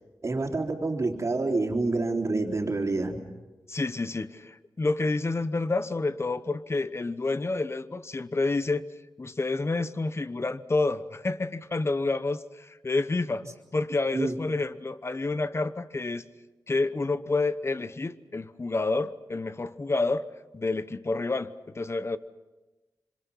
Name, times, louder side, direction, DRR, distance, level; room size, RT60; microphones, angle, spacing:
voice 1, 0.2-3.2 14.1-14.3, right 3 dB, 45° right, 1 dB, 3.8 m, -27 dB
voice 2, 3.7-8.8 9.2-13.4 13.7-16.2 16.7-20.3 20.5-22.2, left 3 dB, 35° left, 14 dB, 1.0 m, -29 dB
26.5 x 26.0 x 5.7 m, 1.1 s
wide cardioid pair, 75°, 7 cm